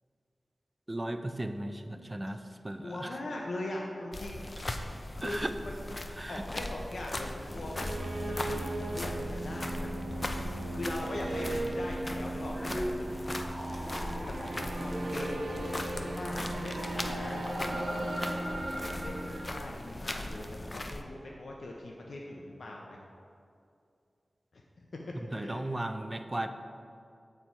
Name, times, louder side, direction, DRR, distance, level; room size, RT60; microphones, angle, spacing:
voice 1, 0.9-3.1 5.2-5.5 6.2-6.4 25.3-26.5, right 1 dB, 25° right, 8 dB, 0.4 m, -36 dB
voice 2, 2.8-4.4 5.1-5.9 6.3-7.9 8.3-10.4 10.7-13.1 14.4-18.0 19.0-23.0 24.5-24.6 25.3-25.6, left 1 dB, 75° left, -1 dB, 0.6 m, -41 dB
sound 1, 4.1-21.0, left 1 dB, 35° left, 0.5 m, -39 dB
sound 2, 7.3-20.1, right 1 dB, 80° right, 0.9 m, -38 dB
sound 3, 12.5-19.4, equal, ahead, 1.3 m, -39 dB
8.3 x 4.5 x 4.4 m, 2.5 s
wide cardioid pair, 65°, 0 cm